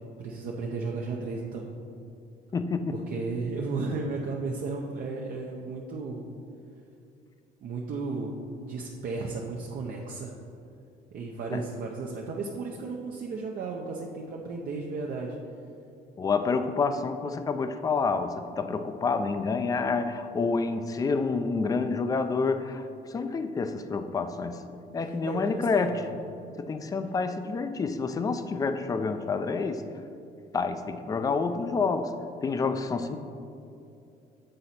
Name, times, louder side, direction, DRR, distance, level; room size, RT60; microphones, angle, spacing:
voice 1, 0.2-1.7 2.9-6.3 7.6-10.3 11.1-15.4 25.0-26.1 33.1-33.2, right 3 dB, 55° right, -1 dB, 0.6 m, -34 dB
voice 2, 2.5-3.0 11.5-11.6 16.2-24.6 24.9-26.1 26.6-29.8 30.5-32.1 32.4-33.2, left 4 dB, 20° left, 9 dB, 0.4 m, -28 dB
7.7 x 3.9 x 4.2 m, 2.6 s
cardioid pair, 110°, 17 cm